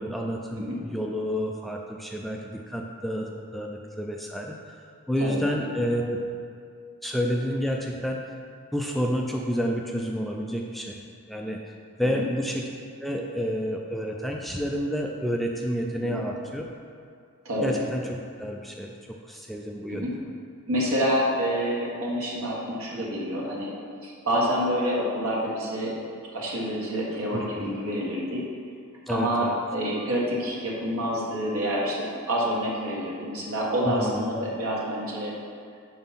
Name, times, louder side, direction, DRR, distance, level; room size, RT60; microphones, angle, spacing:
voice 1, 0.0-4.8 5.1-6.5 7.0-8.4 8.7-11.0 11.3-11.6 12.0-12.7 13.0-16.7 17.6-18.1 18.4-20.1 27.3-27.7 29.1-29.6 33.8-34.3, equal, ahead, 0 dB, 0.4 m, -29 dB
voice 2, 20.7-23.7 24.0-25.9 26.3-28.4 29.1-35.3, equal, 70° right, -5 dB, 1.6 m, -27 dB
5.6 x 4.9 x 5.7 m, 2.3 s
head